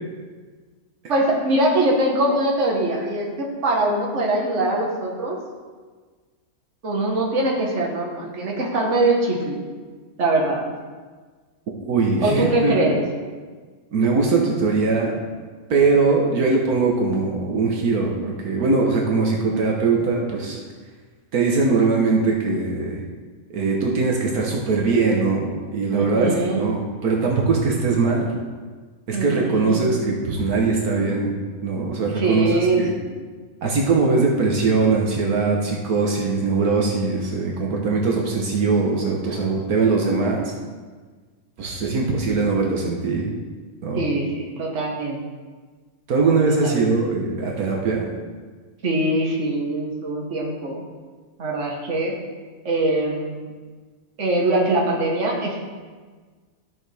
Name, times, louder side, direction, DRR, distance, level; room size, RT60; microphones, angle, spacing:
voice 1, 1.1-5.4 6.8-9.6 10.2-10.6 12.2-13.0 25.9-26.7 29.1-29.8 32.1-32.8 43.9-45.2 46.6-46.9 48.8-50.8 51.4-52.2 52.7-53.5 54.2-55.6, right 2 dB, 55° right, -2 dB, 1.8 m, -22 dB
voice 2, 11.8-12.8 13.9-15.2 15.7-20.6 21.3-23.0 23.5-28.3 29.1-31.4 31.6-32.5 32.8-32.9 33.6-40.5 41.6-43.3 43.8-44.1 46.1-48.1, right 4 dB, 80° right, -1 dB, 1.6 m, -21 dB
12.5 x 7.0 x 3.4 m, 1.4 s
omnidirectional pair, 1.6 m